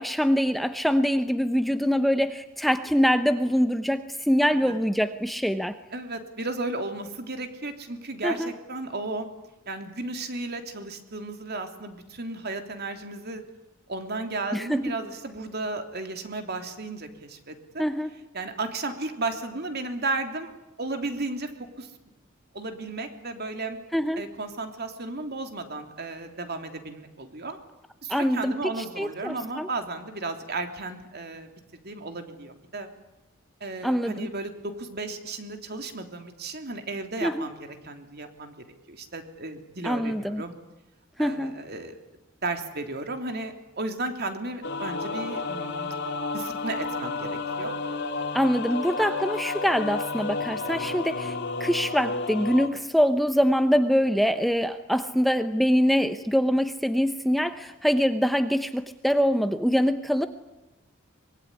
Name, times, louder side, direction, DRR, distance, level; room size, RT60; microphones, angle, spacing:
voice 1, 0.0-5.7 8.2-8.5 14.5-14.8 17.8-18.1 23.9-24.2 28.1-28.5 29.0-29.7 33.8-34.3 37.2-37.5 39.8-40.4 41.2-41.5 48.3-60.3, equal, ahead, 9 dB, 0.9 m, -24 dB
voice 2, 5.9-9.3 9.7-13.4 13.9-17.9 18.3-21.9 22.5-23.8 24.2-27.6 28.0-31.5 31.8-32.9 33.6-38.5 38.9-40.6 41.2-42.0 42.4-45.9 46.3-47.8, right 2 dB, 50° right, 6 dB, 3.2 m, -34 dB
sound 1, 44.6-52.7, left 3 dB, 60° left, 2.7 m, -31 dB
24.5 x 22.5 x 9.8 m, 1.0 s
head